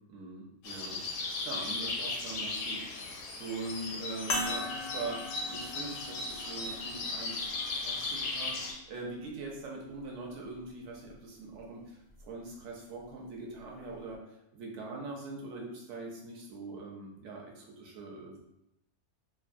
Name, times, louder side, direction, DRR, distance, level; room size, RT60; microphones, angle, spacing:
voice 1, 0.0-14.2 14.5-18.4, right 3 dB, 60° right, -1 dB, 0.9 m, -42 dB
sound 1, 0.6-8.7, left 3 dB, 85° left, 1.1 m, -37 dB
sound 2, 4.3-9.1 9.9-10.0 12.1-12.2, left 3 dB, 70° left, 0.6 m, -40 dB
2.9 x 2.2 x 2.5 m, 0.85 s
omnidirectional pair, 1.5 m